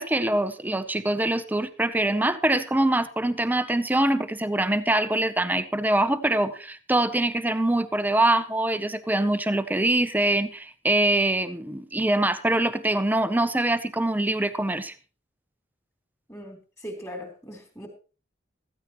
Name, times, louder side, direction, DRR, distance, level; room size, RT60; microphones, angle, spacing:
voice 1, 0.0-14.9, right 1 dB, 10° right, 0.7 m, -24 dB
voice 2, 16.3-17.9, equal, 15° left, 3.5 m, -39 dB
15.5 x 14.5 x 3.1 m
head